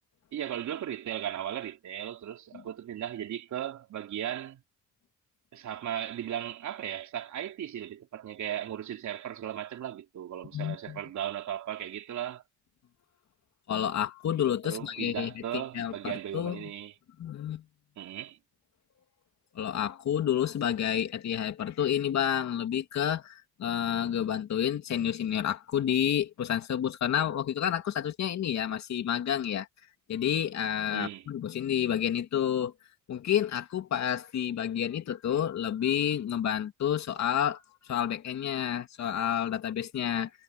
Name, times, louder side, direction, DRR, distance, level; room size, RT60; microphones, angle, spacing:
voice 1, 0.3-4.6 5.5-12.4 14.6-16.9 18.0-18.4 30.9-31.2, right 11 dB, 70° right, 3.3 m, -36 dB
voice 2, 10.5-11.0 13.7-16.6 17.2-17.6 19.5-29.7 30.1-32.7 33.1-40.3, left 9 dB, 65° left, 2.8 m, -30 dB
cardioid pair, 90°, 30 cm